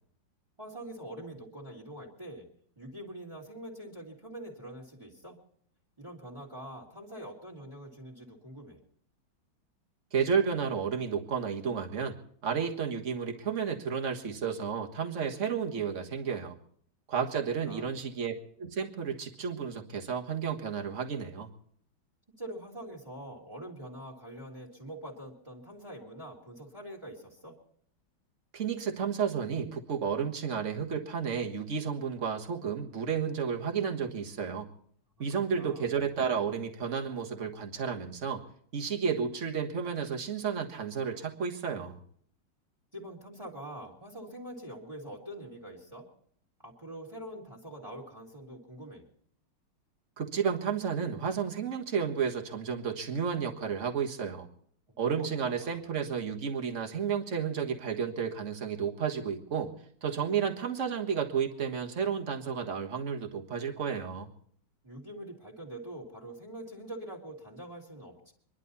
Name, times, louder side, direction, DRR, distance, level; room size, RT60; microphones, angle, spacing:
voice 1, 0.6-2.5 2.8-5.4 6.0-8.8 17.2-17.3 17.7-17.9 22.4-27.6 35.5-35.9 42.9-46.1 46.6-49.1 55.1-55.8 64.8-68.3, right 1 dB, 15° right, 1 dB, 2.4 m, -44 dB
voice 2, 10.1-12.1 12.4-16.6 17.1-21.5 28.5-34.7 35.2-38.4 38.7-42.0 50.2-54.5 55.0-59.7 60.0-64.3, right 6 dB, 40° right, 4 dB, 1.7 m, -32 dB
25.5 x 11.5 x 4.1 m, 0.62 s
omnidirectional pair, 2.2 m